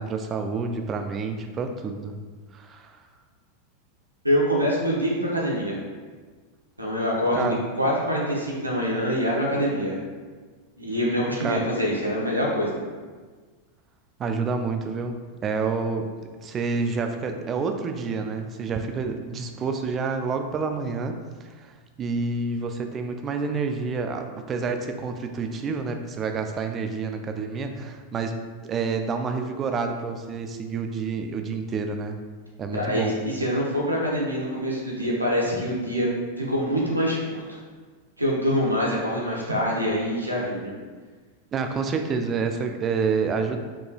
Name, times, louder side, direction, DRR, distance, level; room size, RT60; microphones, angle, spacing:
voice 1, 0.0-2.1 2.5-3.0 7.4-7.6 11.4-11.6 14.2-16.1 16.4-21.7 22.0-28.4 28.6-32.2 32.6-33.1 41.5-43.6, right 4 dB, 25° right, 6 dB, 0.4 m, -28 dB
voice 2, 4.2-5.8 6.8-7.4 7.7-10.0 10.8-12.8 32.7-33.1 33.3-36.1 36.5-37.6 38.2-40.7, equal, 85° right, -4 dB, 0.9 m, -25 dB
4.7 x 3.7 x 2.3 m, 1.5 s
figure-of-eight pair, 90°, 0 cm